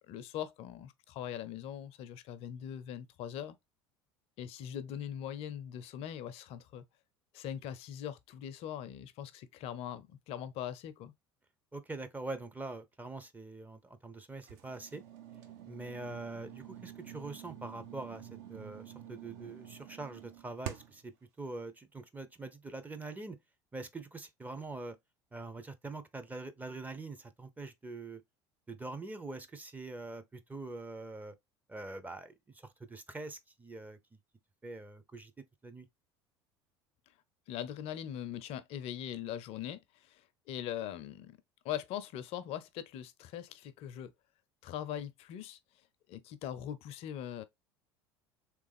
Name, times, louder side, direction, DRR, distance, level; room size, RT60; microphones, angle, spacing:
voice 1, 0.1-3.6 4.4-6.8 7.3-11.1 37.5-41.4 41.6-44.1 44.6-45.6 46.1-47.4, left 10 dB, 50° left, 0.5 m, -41 dB
voice 2, 11.7-15.0 15.7-23.4 23.7-25.0 25.3-28.2 28.7-31.4 31.7-34.0 34.6-35.9, right 2 dB, 10° right, 0.6 m, -44 dB
sound 1, 14.4-21.1, right 10 dB, 55° right, 0.7 m, -48 dB
3.4 x 3.2 x 3.4 m
figure-of-eight pair, 70°, 14 cm